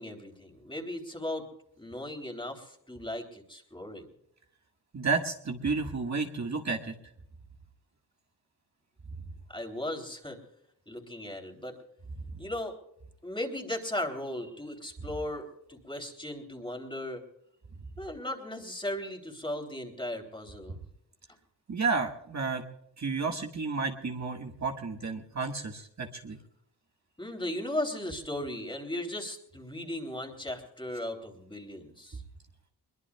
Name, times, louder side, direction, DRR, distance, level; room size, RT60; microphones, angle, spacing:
voice 1, 0.0-1.5 1.8-4.0 9.5-10.4 10.9-11.8 12.4-12.8 13.2-17.2 18.0-20.8 27.2-32.2, left 1 dB, 10° left, 3 dB, 3.2 m, -37 dB
voice 2, 4.9-6.9 21.7-22.6 23.0-26.4, right 4 dB, 45° right, 2 dB, 1.7 m, -31 dB
22.5 x 22.0 x 2.3 m, 0.77 s
cardioid pair, 80°, 40 cm